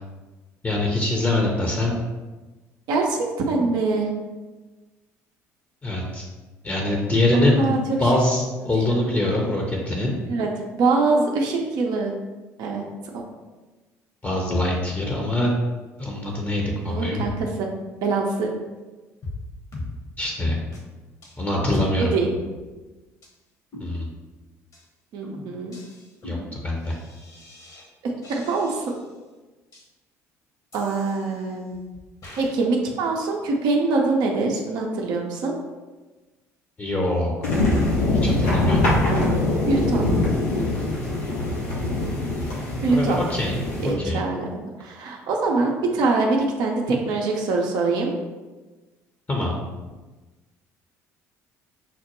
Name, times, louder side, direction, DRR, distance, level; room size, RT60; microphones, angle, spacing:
voice 1, 0.6-2.0 5.8-6.3 6.6-10.2 14.2-15.5 16.0-17.3 20.2-20.6 21.4-22.1 23.8-24.1 26.2-27.0 36.8-37.3 38.2-38.9 42.9-44.2 49.3-49.6, left 1 dB, 25° left, 0 dB, 0.7 m, -24 dB
voice 2, 2.9-4.1 7.3-8.0 10.3-12.1 12.6-12.8 13.1-13.2 16.9-17.7 18.0-18.5 22.0-22.3 25.1-25.7 28.3-28.8 30.7-31.8 32.4-35.5 39.0-39.4 39.7-40.1 42.8-43.2 43.8-48.1, right 3 dB, 60° right, 0 dB, 0.6 m, -24 dB
sound 1, 19.2-19.4 19.7-19.9 20.2-20.3 20.7-20.8 21.2-21.4 21.7-21.8 22.2-22.9 23.2-23.3 23.7-24.3 24.7-24.9 25.2-27.9 28.2-29.1 29.7-29.8 30.7-31.7 32.2-32.5, left 2 dB, 45° left, 1.1 m, -41 dB
sound 2, 37.4-43.9, left 2 dB, 85° left, 0.8 m, -23 dB
5.7 x 2.1 x 3.0 m, 1.2 s
hypercardioid pair, 60°, 8 cm